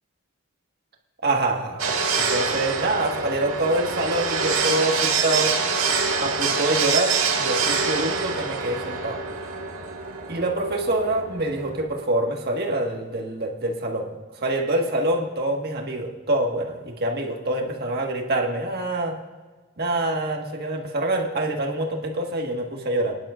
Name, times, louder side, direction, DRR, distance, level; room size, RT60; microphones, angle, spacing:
voice 1, 1.2-5.5 6.2-9.2 10.3-14.1 14.4-19.1 19.8-23.1, right 1 dB, 50° right, 1 dB, 1.6 m, -25 dB
sound 1, 1.8-11.9, right 5 dB, 80° right, 1.6 m, -26 dB
21.5 x 11.0 x 2.5 m, 1.3 s
head